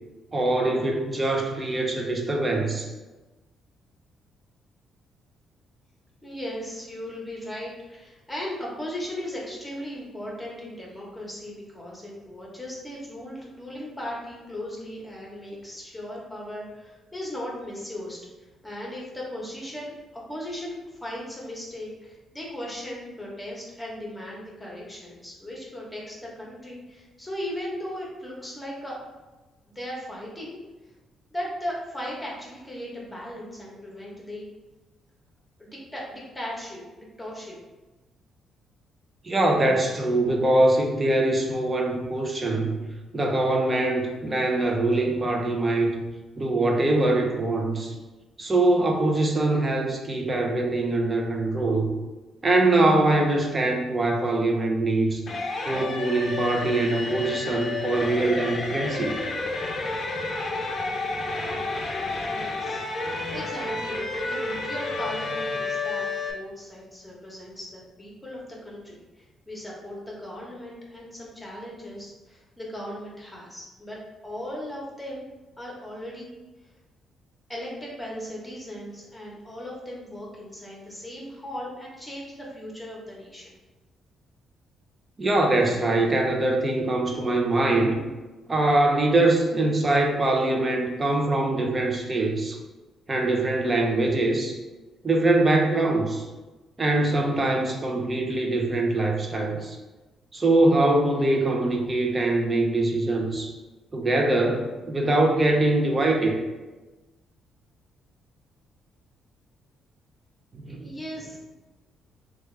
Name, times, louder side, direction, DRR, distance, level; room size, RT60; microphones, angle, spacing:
voice 1, 0.3-2.9 39.2-42.8 43.1-46.0 46.4-47.9 48.4-51.9 52.4-55.2 55.6-59.2 85.2-88.0 88.5-92.6 93.1-94.6 95.0-96.2 96.8-99.8 100.3-103.5 103.9-106.4 110.5-111.0, right 2 dB, 30° right, 1 dB, 0.6 m, -23 dB
voice 2, 6.2-18.2 18.6-20.8 21.0-29.0 29.7-30.6 31.3-34.5 35.6-37.6 62.3-68.4 68.6-75.3 75.6-76.3 77.5-83.5 110.8-111.4, left 1 dB, 10° left, -4 dB, 1.0 m, -37 dB
sound 1, 55.3-66.3, left 3 dB, 45° left, 0.5 m, -30 dB
3.2 x 2.4 x 3.2 m, 1.2 s
cardioid pair, 90°, 0 cm